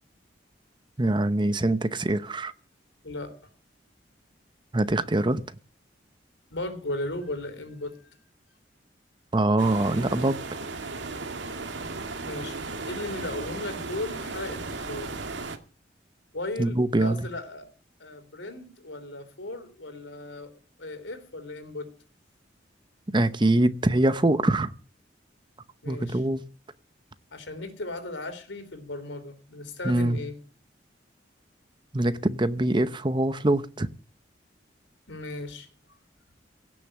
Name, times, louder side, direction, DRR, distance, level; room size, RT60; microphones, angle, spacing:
voice 1, 1.0-2.5 4.7-5.4 9.3-10.4 16.6-17.3 23.1-24.7 25.9-26.4 29.8-30.2 31.9-33.9, right 1 dB, 25° right, 0.8 m, -24 dB
voice 2, 3.0-3.4 6.5-8.0 12.2-12.6 12.8-15.2 16.3-17.7 18.0-20.5 20.8-21.9 25.8-26.2 27.3-30.4 35.1-35.7, left 2 dB, 85° left, 3.4 m, -36 dB
sound 1, 9.6-15.6, right 3 dB, 80° right, 1.9 m, -35 dB
17.0 x 6.8 x 8.8 m
head